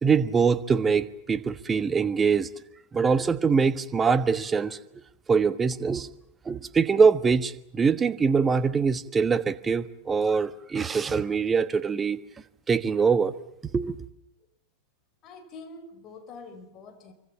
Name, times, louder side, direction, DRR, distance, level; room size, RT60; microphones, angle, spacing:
voice 1, 0.0-2.5 2.9-4.8 5.3-6.1 6.5-12.2 12.7-13.3 13.7-14.0, right 5 dB, 15° right, 1.3 m, -23 dB
voice 2, 15.2-17.1, left 3 dB, 30° left, 4.6 m, -45 dB
26.5 x 24.5 x 7.3 m
figure-of-eight pair, 90°, 0 cm